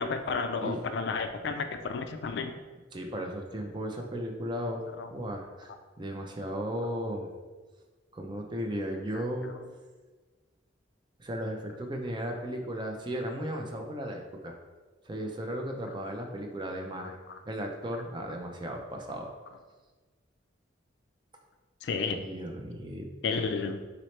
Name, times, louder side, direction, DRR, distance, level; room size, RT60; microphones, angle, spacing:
voice 1, 0.0-2.5 5.0-5.1 9.1-9.5 17.0-17.1 21.8-22.2 23.2-23.8, left 4 dB, 55° left, 8 dB, 0.3 m, -32 dB
voice 2, 2.9-5.7 6.0-7.3 8.1-9.5 11.2-14.6 15.0-17.2 17.5-19.3 22.2-23.1, equal, 25° right, 2 dB, 0.5 m, -35 dB
4.2 x 3.9 x 3.2 m, 1.3 s
head